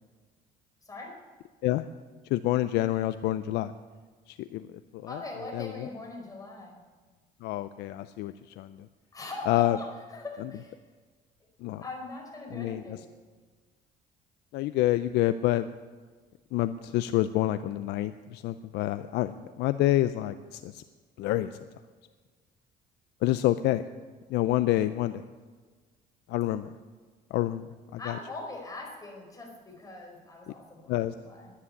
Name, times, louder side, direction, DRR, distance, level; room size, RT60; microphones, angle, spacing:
voice 1, 0.8-1.1 5.1-6.8 9.1-10.8 11.8-13.1 28.0-31.5, left 2 dB, 20° left, 0 dB, 4.7 m, -41 dB
voice 2, 2.3-3.7 4.3-5.2 5.5-5.9 7.4-8.9 9.5-9.8 11.6-11.8 12.5-13.0 14.5-15.7 16.5-20.8 21.2-21.6 23.2-23.8 24.3-25.2 26.3-26.7 27.3-27.7 27.9-28.2 30.9-31.1, left 14 dB, 80° left, 12 dB, 0.5 m, -28 dB
11.0 x 9.8 x 9.8 m, 1.4 s
cardioid pair, 110°, 17 cm